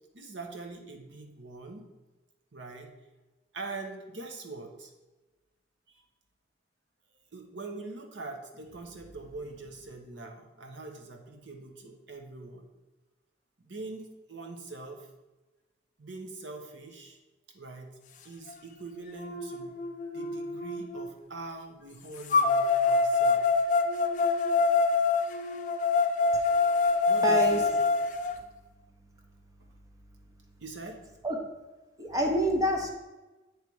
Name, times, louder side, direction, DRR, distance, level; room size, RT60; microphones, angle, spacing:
voice 1, 0.1-1.9 2.5-2.9 3.5-4.9 7.3-12.7 13.6-15.1 16.0-17.2 17.5-18.0 18.2-23.4 27.1-27.8 30.6-31.0, right 3 dB, 75° right, 4 dB, 0.9 m, -43 dB
sound 1, 18.5-18.6 19.2-21.1 22.3-28.3, left 4 dB, 40° left, 0.4 m, -25 dB
voice 2, 27.2-27.6 31.2-31.4 32.0-32.9, right 1 dB, 20° right, 2 dB, 0.7 m, -26 dB
8.3 x 3.2 x 4.7 m, 1.1 s
head